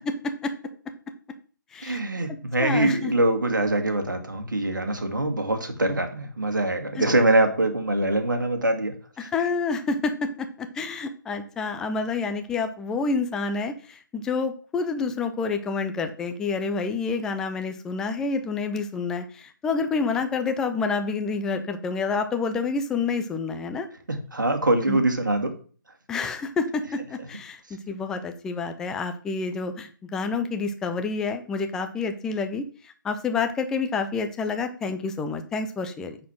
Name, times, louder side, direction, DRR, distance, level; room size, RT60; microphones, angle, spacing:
voice 1, 1.8-8.9 9.2-9.3 24.1-25.6, right 2 dB, 65° right, 5 dB, 2.0 m, -23 dB
voice 2, 2.6-3.1 7.0-7.1 9.2-23.9 24.9-25.0 26.1-36.2, left 4 dB, 5° left, 7 dB, 0.4 m, -28 dB
9.1 x 4.3 x 6.1 m, 0.42 s
figure-of-eight pair, 145°, 11 cm